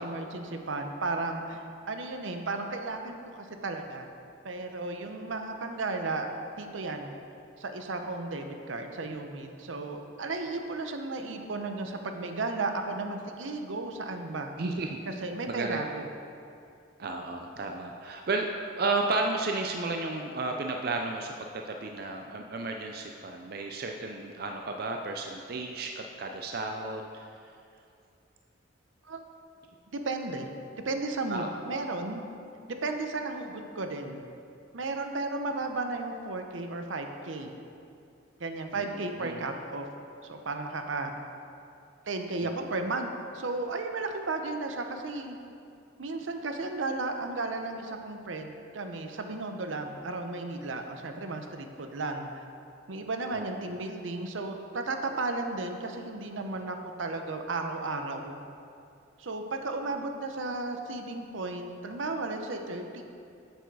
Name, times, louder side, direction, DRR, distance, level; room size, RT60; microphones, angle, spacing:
voice 1, 0.0-4.1 4.4-6.3 6.6-7.1 7.6-14.5 15.1-16.1 29.0-29.2 29.9-30.5 30.8-32.2 32.8-34.2 34.7-37.5 38.4-39.9 40.3-41.1 42.1-45.4 46.0-52.4 52.9-58.4 59.2-63.0, right 3 dB, 80° right, 5 dB, 0.7 m, -34 dB
voice 2, 14.6-15.0 15.5-15.8 17.0-18.5 18.8-27.4 31.3-31.5 38.7-39.5 42.4-42.5 53.3-53.5, right 3 dB, 50° right, 3 dB, 0.4 m, -33 dB
7.9 x 7.0 x 4.7 m, 2.5 s
head